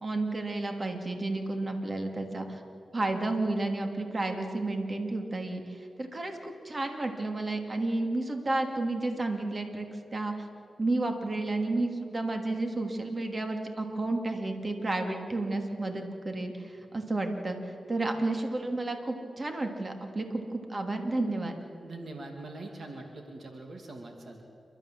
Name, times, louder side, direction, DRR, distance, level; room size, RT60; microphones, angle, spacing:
voice 1, 0.0-2.6 2.9-9.9 10.1-10.3 10.8-21.6, right 2 dB, 45° right, 4 dB, 2.8 m, -31 dB
voice 2, 21.8-24.4, right 2 dB, 70° right, 3 dB, 2.4 m, -43 dB
29.0 x 13.0 x 7.6 m, 2.8 s
cardioid pair, 50°, 0 cm